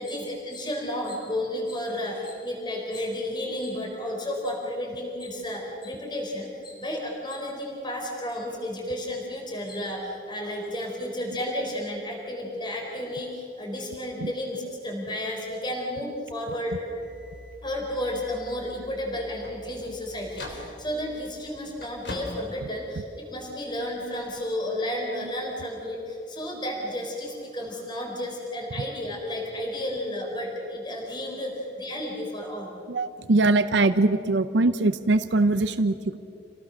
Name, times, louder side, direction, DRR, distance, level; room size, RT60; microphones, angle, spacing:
voice 1, 0.0-16.7 17.6-32.7, left 1 dB, 25° left, -1 dB, 4.4 m, -32 dB
sound 1, 16.9-23.5, left 1 dB, 80° left, 3.4 m, -43 dB
voice 2, 32.9-36.2, right 2 dB, 85° right, 11 dB, 0.7 m, -22 dB
28.0 x 18.0 x 6.4 m, 2.7 s
head